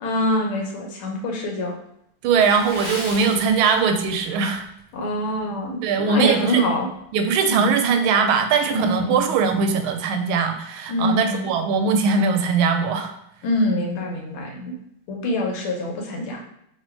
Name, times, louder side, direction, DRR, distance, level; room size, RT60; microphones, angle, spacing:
voice 1, 0.0-1.8 4.9-6.9 7.4-7.7 8.7-9.3 10.9-11.5 13.4-14.7 15.1-16.4, equal, 90° left, 0 dB, 1.7 m, -25 dB
voice 2, 2.2-4.7 5.8-6.6 7.1-13.1, right 5 dB, 85° right, 6 dB, 1.4 m, -20 dB
Water / Splash splatter, 2.3-4.2 4.5-4.8 5.4-5.6 6.0-6.1, left 1 dB, 25° left, 0.7 m, -35 dB
3.3 x 3.0 x 4.4 m, 0.77 s
omnidirectional pair, 2.2 m